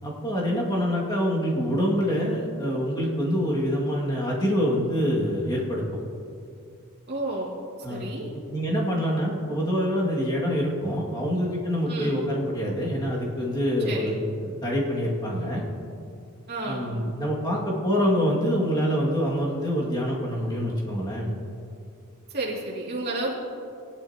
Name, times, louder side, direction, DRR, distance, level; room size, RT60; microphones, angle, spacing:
voice 1, 0.0-5.8 7.8-8.1 8.5-14.1 14.4-15.6 16.7-21.3, equal, 20° left, -5 dB, 2.2 m, -26 dB
voice 2, 7.1-7.5 7.9-8.3 11.9-12.2 13.9-14.1 16.5-16.9 22.3-23.3, right 2 dB, 45° right, -4 dB, 2.5 m, -31 dB
17.0 x 11.5 x 2.9 m, 2.5 s
head